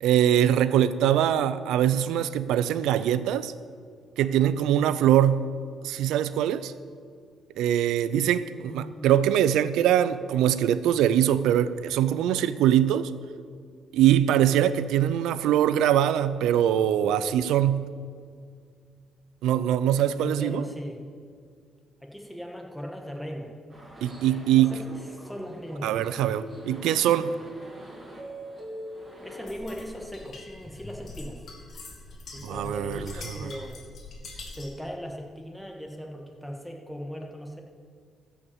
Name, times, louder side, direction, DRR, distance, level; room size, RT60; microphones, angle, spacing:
voice 1, 0.0-3.5 4.2-5.5 5.8-6.7 7.6-13.1 13.9-17.9 19.4-20.6 24.0-24.7 25.8-27.3 32.4-33.5, right 11 dB, 90° right, 14 dB, 0.5 m, -23 dB
voice 2, 8.6-9.1 20.2-21.0 22.0-23.5 24.5-25.9 29.2-31.5 32.3-33.9 34.5-37.6, equal, ahead, 1 dB, 1.7 m, -38 dB
sound 1, 23.7-29.5, right 1 dB, 30° right, 3.2 m, -43 dB
sound 2, 29.5-34.8, left 2 dB, 55° left, 2.5 m, -43 dB
14.0 x 5.9 x 7.2 m, 2.1 s
cardioid pair, 90°, 0 cm